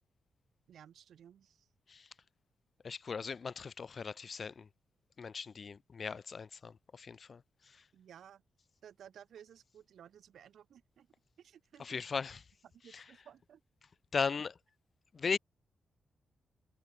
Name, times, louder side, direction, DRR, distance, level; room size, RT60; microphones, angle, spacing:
voice 1, 0.7-1.7 7.9-8.4 8.8-11.1 11.4-11.9 12.7-13.6, right 9 dB, 75° right, 3.9 m, -56 dB
voice 2, 2.8-4.7 5.2-7.9 11.8-12.5 12.8-13.1 14.1-14.6 15.1-15.4, left 5 dB, 40° left, 1.0 m, -38 dB
wide cardioid pair, 160°, 0 cm